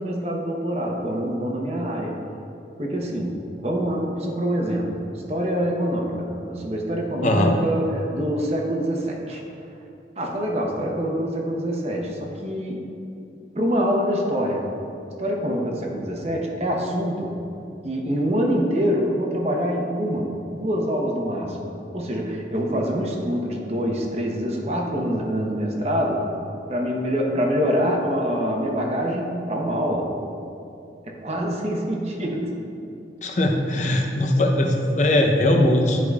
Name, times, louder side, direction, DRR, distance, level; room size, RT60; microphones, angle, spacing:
voice 1, 0.0-2.2 2.8-5.0 5.3-9.4 10.2-12.9 13.5-14.7 15.2-17.4 17.8-26.3 26.7-30.1 31.1-32.6 33.7-33.8, equal, 35° right, 0 dB, 0.8 m, -25 dB
voice 2, 7.2-7.6 33.2-36.0, left 1 dB, 40° left, 2 dB, 0.6 m, -20 dB
11.5 x 4.8 x 2.3 m, 2.7 s
head